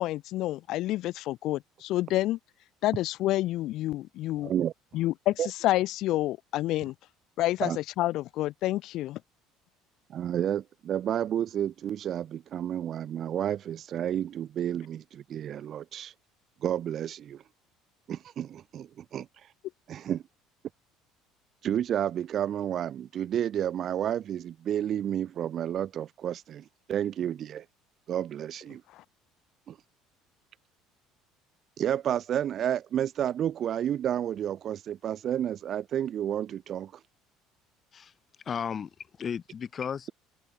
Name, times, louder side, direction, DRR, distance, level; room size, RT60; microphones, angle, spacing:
voice 1, 0.0-2.4 2.8-4.5 4.9-6.9 7.4-9.2 28.9-29.0, left 16 dB, 55° left, 2.0 m, -28 dB
voice 2, 4.4-4.7 5.4-5.5 7.6-7.8 10.1-16.1 16.6-17.4 18.1-19.3 19.9-20.2 21.6-27.6 28.1-28.8 29.7-29.8 31.8-36.9, right 10 dB, 35° right, 1.4 m, -31 dB
voice 3, 38.4-40.1, left 7 dB, 25° left, 3.5 m, -35 dB
open air
cardioid pair, 160°, 0 cm